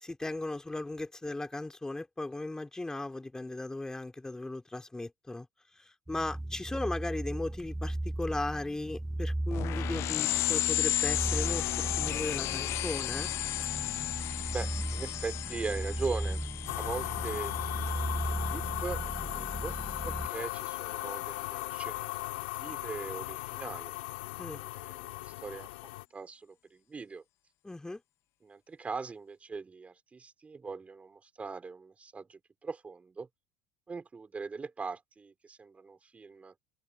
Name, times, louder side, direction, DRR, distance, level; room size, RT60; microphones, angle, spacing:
voice 1, 0.0-5.5 6.1-11.7 12.0-13.3 24.4-24.6 27.6-28.0, left 2 dB, 10° left, 3.1 m, -37 dB
sound 1, 6.1-20.3, right 1 dB, 5° right, 1.0 m, -36 dB
sound 2, 9.5-19.6, left 16 dB, 55° left, 0.4 m, -34 dB
voice 2, 14.5-16.4 16.7-19.8 20.0-23.9 24.5-25.7 26.1-27.2 28.4-33.3 33.9-36.5, right 4 dB, 25° right, 4.4 m, -41 dB
sound 3, 16.7-26.0, left 21 dB, 80° left, 3.0 m, -38 dB
open air
hypercardioid pair, 75°, 5 cm